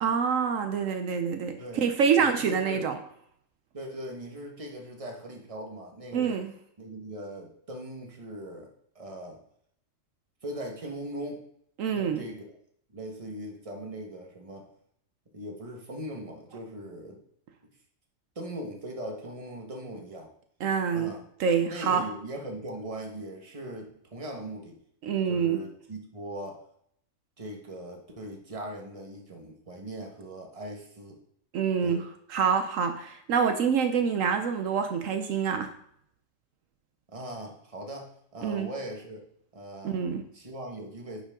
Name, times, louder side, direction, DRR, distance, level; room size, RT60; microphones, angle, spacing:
voice 1, 0.0-3.0 6.1-6.5 11.8-12.2 20.6-21.1 21.4-22.0 25.0-25.6 31.5-32.0 32.3-35.7 38.4-38.7 39.8-40.2, right 6 dB, 75° right, 7 dB, 1.1 m, -26 dB
voice 2, 1.6-1.9 2.2-2.9 3.7-6.4 6.8-9.4 10.4-11.4 11.9-12.5 12.9-14.7 15.3-17.2 18.3-20.3 20.9-21.2 21.7-24.7 25.3-26.6 27.4-31.2 31.8-32.0 37.1-39.2 39.5-40.0 40.3-41.2, right 1 dB, 25° right, 1 dB, 1.4 m, -40 dB
10.5 x 5.2 x 3.7 m, 0.69 s
omnidirectional pair, 1.4 m